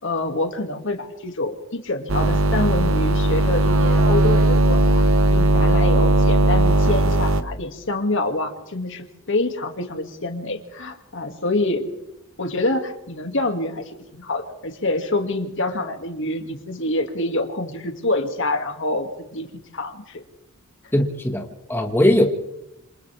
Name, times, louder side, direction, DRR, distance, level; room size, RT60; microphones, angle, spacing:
voice 1, 0.0-5.0 5.3-11.8 12.4-20.2, left 2 dB, 60° left, 5 dB, 2.4 m, -26 dB
sound 1, 2.1-7.4, right 2 dB, 70° right, 1.2 m, -17 dB
voice 2, 20.9-22.3, left 1 dB, 10° left, 3 dB, 1.8 m, -19 dB
28.5 x 27.0 x 3.6 m, 0.87 s
head